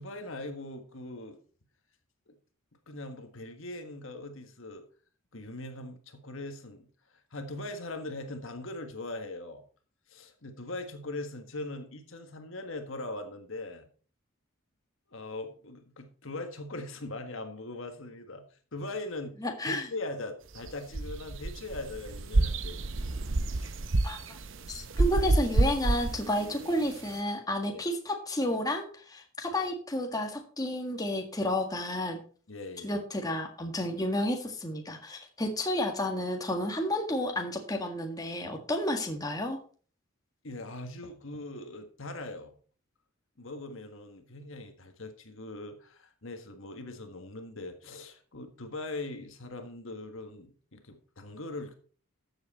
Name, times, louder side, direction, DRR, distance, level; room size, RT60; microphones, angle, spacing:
voice 1, 0.0-1.4 2.3-2.4 2.9-4.8 5.3-9.6 10.1-13.9 15.1-19.4 19.7-22.8 23.5-23.8 27.7-27.8 29.5-29.6 32.5-32.9 40.4-42.5 43.4-51.7, left 2 dB, 65° left, 6 dB, 1.6 m, -41 dB
voice 2, 19.4-19.8 24.0-24.4 24.7-32.2 32.8-39.6, left 1 dB, 15° left, 3 dB, 1.7 m, -31 dB
sound 1, 20.5-27.2, right 2 dB, 60° right, 0.8 m, -29 dB
13.5 x 7.7 x 4.2 m, 0.41 s
head